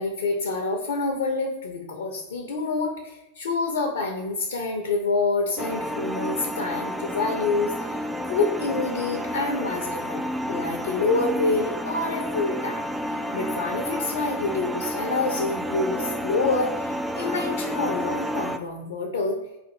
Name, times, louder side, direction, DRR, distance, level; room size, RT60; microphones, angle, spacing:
voice 1, 0.0-8.0 8.3-10.2 10.5-19.4, left 3 dB, 60° left, 2 dB, 0.7 m, -27 dB
sound 1, 5.6-18.6, equal, 5° right, 0.3 m, -30 dB
4.1 x 2.5 x 4.4 m, 0.96 s
figure-of-eight pair, 90°, 0 cm